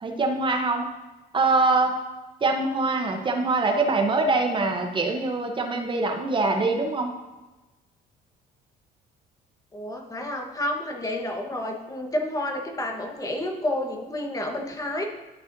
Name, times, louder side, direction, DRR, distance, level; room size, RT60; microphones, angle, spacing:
voice 1, 0.0-0.9 1.3-2.0 2.4-7.1, right 3 dB, 30° right, 3 dB, 0.8 m, -23 dB
voice 2, 9.7-15.1, left 1 dB, 20° left, 2 dB, 1.2 m, -30 dB
13.0 x 5.6 x 2.6 m, 1.1 s
cardioid pair, 110°, 17 cm